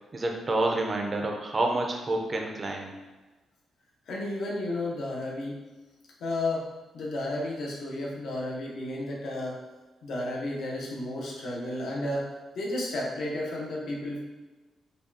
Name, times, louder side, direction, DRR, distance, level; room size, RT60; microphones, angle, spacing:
voice 1, 0.1-2.9, right 2 dB, 25° right, 2 dB, 0.4 m, -28 dB
voice 2, 4.1-5.6 6.2-6.7 6.9-9.6 10.0-14.2, left 1 dB, 65° left, -3 dB, 0.8 m, -32 dB
5.0 x 2.3 x 2.6 m, 1.2 s
wide cardioid pair, 165°, 0 cm